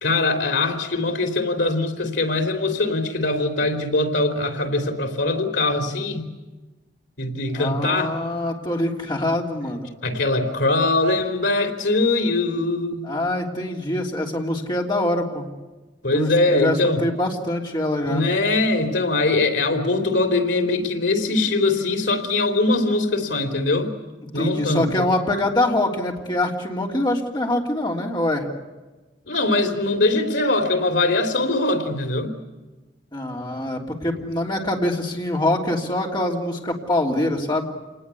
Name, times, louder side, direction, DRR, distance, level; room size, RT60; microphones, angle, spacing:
voice 1, 0.0-6.3 7.2-8.2 10.0-13.1 16.0-17.0 18.0-23.9 24.3-25.1 29.3-32.3, left 2 dB, 80° left, 7 dB, 3.6 m, -22 dB
voice 2, 7.5-9.9 13.0-15.5 16.1-18.2 24.3-28.5 33.1-37.7, left 1 dB, 25° left, 0 dB, 3.3 m, -24 dB
27.5 x 20.0 x 8.5 m, 1.2 s
head